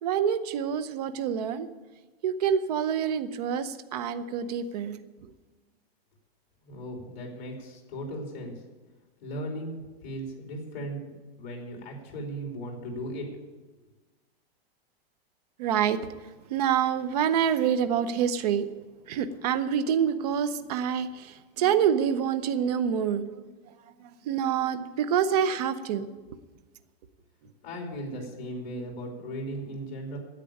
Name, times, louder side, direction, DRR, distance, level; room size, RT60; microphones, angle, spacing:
voice 1, 0.0-1.7 2.2-5.0 15.6-16.0 16.5-18.7 19.1-23.4 24.0-26.1, right 8 dB, 40° right, 12 dB, 0.7 m, -27 dB
voice 2, 6.6-8.6 9.2-11.1 11.4-13.3 27.6-30.2, equal, 45° left, 1 dB, 3.0 m, -37 dB
10.0 x 8.2 x 8.8 m, 1.3 s
supercardioid pair, 170°, 31 cm